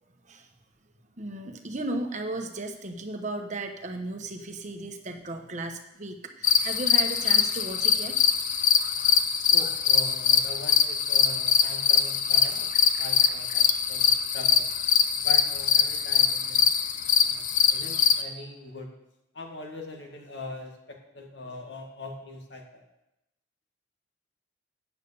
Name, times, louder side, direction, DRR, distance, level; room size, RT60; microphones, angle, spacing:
voice 1, 1.2-8.2, right 2 dB, 40° right, 5 dB, 1.1 m, -35 dB
sound 1, 6.4-18.2, left 7 dB, 45° left, 0.6 m, -23 dB
voice 2, 9.5-12.7 13.0-14.7 15.2-16.6 17.2-18.9 19.3-22.8, left 2 dB, 75° left, 2 dB, 2.0 m, -41 dB
9.0 x 8.1 x 6.9 m, 0.90 s
head